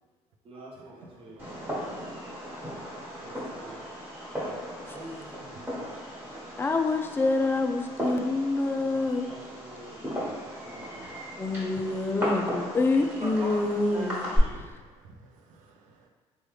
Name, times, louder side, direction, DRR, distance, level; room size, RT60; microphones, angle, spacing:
voice 1, 0.4-1.5 3.2-3.8 4.4-4.6 4.9-5.9 8.9-11.1 12.9-14.7, right 1 dB, 45° right, -4 dB, 0.7 m, -44 dB
voice 2, 1.2-2.2 10.8-11.1 15.0-16.0, right 4 dB, 85° right, 3 dB, 0.4 m, -55 dB
Fireworks, 1.4-14.4, equal, 15° right, 1.3 m, -36 dB
voice 3, 6.6-9.3 11.4-14.3, left 3 dB, 15° left, 4 dB, 0.3 m, -26 dB
3.2 x 2.3 x 3.1 m, 1.4 s
cardioid pair, 85°, 13 cm